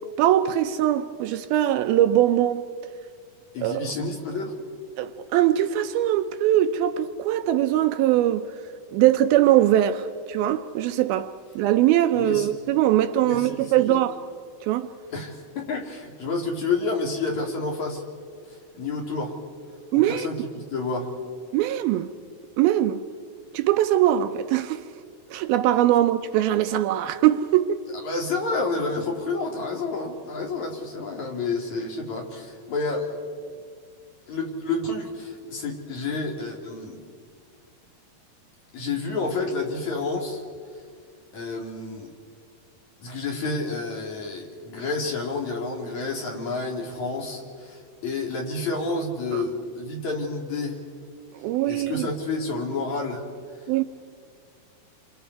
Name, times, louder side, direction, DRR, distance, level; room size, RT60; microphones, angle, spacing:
voice 1, 0.2-2.6 3.6-3.9 5.0-8.5 8.9-11.3 11.6-14.2 14.7-14.9 19.9-20.3 21.5-22.1 22.6-23.0 23.5-24.8 25.3-27.8 49.3-49.4 51.4-52.1 53.7-53.8, right 12 dB, 80° right, 2.4 m, -21 dB
voice 2, 3.5-4.5 12.1-12.5 13.2-14.0 15.1-18.0 18.7-19.4 19.9-21.2 28.0-33.1 34.3-37.0 38.7-40.4 41.3-42.1 43.0-50.8 51.6-53.2, left 3 dB, 50° left, 3.5 m, -29 dB
29.0 x 26.0 x 4.7 m
omnidirectional pair, 4.5 m